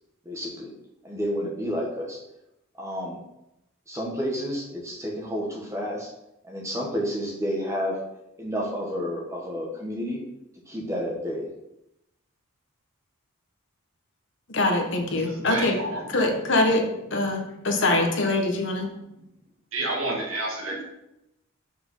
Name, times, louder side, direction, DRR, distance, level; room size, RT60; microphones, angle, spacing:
voice 1, 0.2-0.7 1.0-2.2 2.8-3.2 3.9-6.1 6.4-8.0 8.4-10.2 10.7-11.5, equal, 15° right, -2 dB, 1.6 m, -30 dB
voice 2, 14.5-15.8 16.1-16.8 17.1-18.9, left 2 dB, 55° left, 2 dB, 1.3 m, -23 dB
voice 3, 15.0-16.5 17.2-17.7 19.7-20.8, right 2 dB, 75° right, -3 dB, 1.9 m, -31 dB
6.0 x 5.2 x 5.6 m, 0.87 s
head